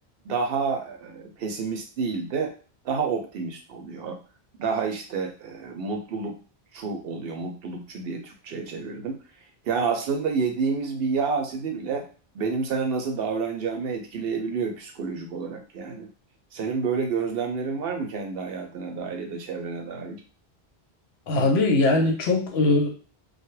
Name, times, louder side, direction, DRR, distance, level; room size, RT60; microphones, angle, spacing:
voice 1, 0.2-2.5 2.8-4.2 4.6-6.4 6.7-9.2 9.6-12.1 12.3-16.1 16.5-20.2, right 5 dB, 70° right, 4 dB, 0.7 m, -29 dB
voice 2, 21.3-22.9, left 2 dB, 75° left, 2 dB, 0.9 m, -21 dB
2.2 x 2.0 x 3.0 m, 0.38 s
omnidirectional pair, 1.1 m